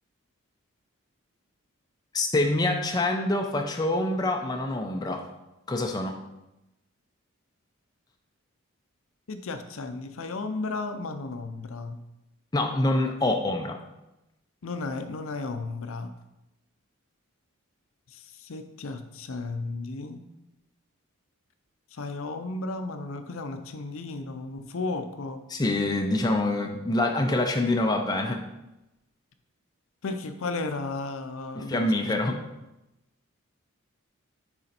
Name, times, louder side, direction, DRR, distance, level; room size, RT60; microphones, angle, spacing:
voice 1, 2.1-5.3 5.7-6.2 12.5-13.8 25.5-28.4 31.6-32.4, left 2 dB, 15° left, 3 dB, 0.4 m, -26 dB
voice 2, 9.3-12.0 14.6-16.1 18.1-20.2 21.9-25.4 30.0-32.1, left 3 dB, 65° left, 8 dB, 0.5 m, -34 dB
6.5 x 4.2 x 4.3 m, 0.94 s
head